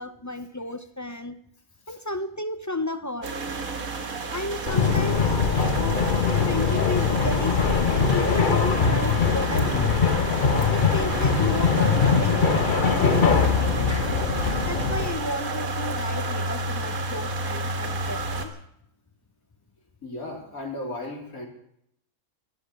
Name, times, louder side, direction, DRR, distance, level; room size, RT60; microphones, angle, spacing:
voice 1, 0.0-1.4 1.9-3.3 4.3-5.4 5.7-6.0 6.3-10.3 10.7-14.3 14.7-18.5, left 1 dB, 20° left, 11 dB, 0.5 m, -33 dB
sound 1, 3.2-18.5, right 3 dB, 80° right, 2.3 m, -31 dB
sound 2, 4.7-15.1, left 5 dB, 40° left, 1.1 m, -22 dB
voice 2, 20.0-21.5, left 2 dB, 85° left, 1 dB, 3.8 m, -35 dB
13.0 x 12.0 x 8.4 m, 0.73 s
omnidirectional pair, 1.5 m